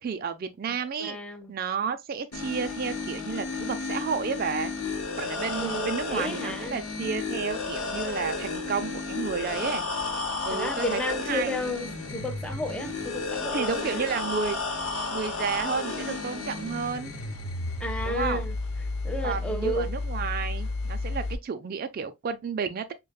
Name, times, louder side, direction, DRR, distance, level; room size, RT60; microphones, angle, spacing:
voice 1, 0.0-1.2 1.5-4.7 5.2-9.8 10.4-11.5 13.5-14.6 15.1-17.1 18.0-18.4 19.2-22.9, right 6 dB, 45° right, 0.3 m, -31 dB
voice 2, 1.0-1.5 5.6-6.8 10.5-14.0 17.8-18.6 19.0-19.9, left 1 dB, 5° left, 0.7 m, -32 dB
sound 1, 2.3-21.3, left 3 dB, 75° left, 1.1 m, -32 dB
6.2 x 2.2 x 2.3 m
head